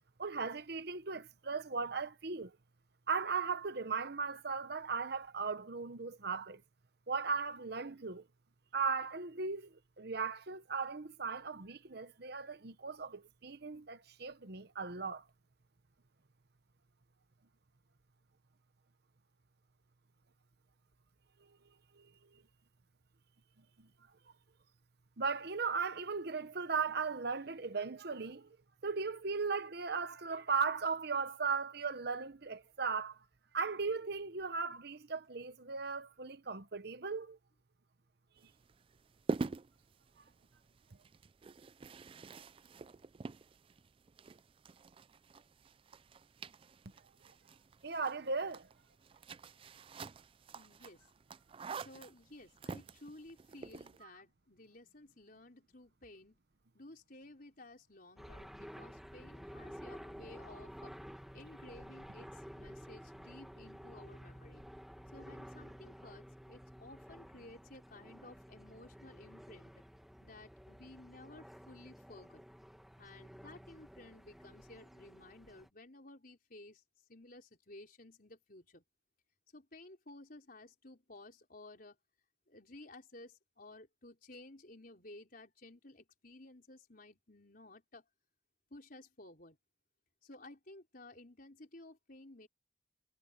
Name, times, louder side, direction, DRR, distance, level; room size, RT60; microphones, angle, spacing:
voice 1, 0.2-2.6 3.1-6.6 7.1-8.2 8.7-15.2 21.5-21.6 21.9-22.4 23.8-23.9 25.2-28.6 28.8-33.2 33.5-37.4 47.8-48.7, right 5 dB, 55° right, 1.0 m, -37 dB
sound 1, 38.4-54.0, right 3 dB, 30° right, 0.3 m, -46 dB
voice 2, 50.5-51.0 51.8-56.4 56.7-60.9 61.3-64.6 65.1-69.8 70.2-72.5 73.0-76.8 77.1-78.8 79.5-82.0 82.5-88.0 88.7-89.6 90.2-92.5, left 2 dB, 45° left, 4.5 m, -55 dB
sound 2, 58.2-75.7, equal, ahead, 1.6 m, -52 dB
head